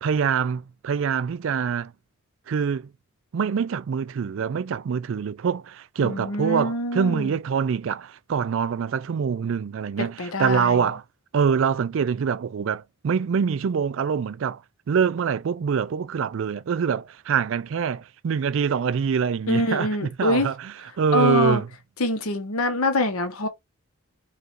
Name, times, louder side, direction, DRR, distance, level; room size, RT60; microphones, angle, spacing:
voice 1, 0.0-1.9 2.5-2.9 3.3-11.0 11.3-14.6 14.9-21.7, right 6 dB, 65° right, 0.3 m, -25 dB
voice 2, 6.0-7.4 10.2-10.8 19.5-20.5 21.1-21.6 22.0-23.5, left 1 dB, 90° left, 1.1 m, -24 dB
4.8 x 2.5 x 2.9 m
head